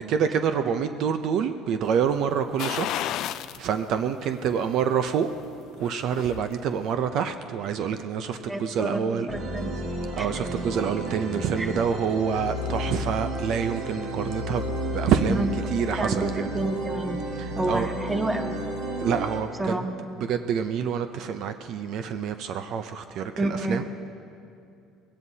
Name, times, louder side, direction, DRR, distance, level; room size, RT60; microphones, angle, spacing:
voice 1, 0.0-3.1 3.6-5.3 5.8-9.3 10.1-16.5 17.4-17.9 19.0-19.8 20.2-23.8, right 7 dB, 50° right, 9 dB, 0.5 m, -27 dB
sound 1, 2.6-3.7 4.1-4.2 5.7-6.5 6.8-6.9, left 12 dB, 50° left, 0.3 m, -31 dB
voice 2, 8.5-9.0 9.3-9.7 10.2-10.3 11.6-11.7 15.3-15.5 16.0-17.2 17.6-18.5 19.6-20.1 23.4-23.8, right 2 dB, 10° right, 6 dB, 0.8 m, -29 dB
sound 2, 9.3-19.4, equal, 70° right, 2.4 m, -32 dB
21.5 x 17.0 x 2.8 m, 2.5 s
cardioid pair, 165°, 0 cm